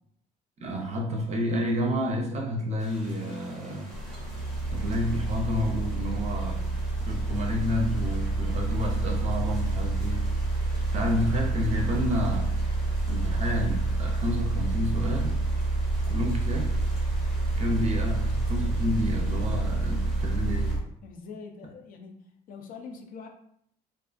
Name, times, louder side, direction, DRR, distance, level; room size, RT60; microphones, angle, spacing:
voice 1, 0.6-3.9 4.7-6.6 7.0-10.3 10.9-12.5 13.1-15.4 16.1-16.7 17.6-20.8, left 1 dB, 40° right, 2 dB, 0.5 m, -30 dB
sound 1, 2.8-20.8, equal, 5° left, 0.8 m, -49 dB
sound 2, 3.9-20.8, right 2 dB, 85° right, 0.6 m, -28 dB
voice 2, 21.0-22.2 22.5-23.3, left 5 dB, 55° left, 3 dB, 0.5 m, -43 dB
2.4 x 2.3 x 2.5 m, 0.70 s
cardioid pair, 110°, 17 cm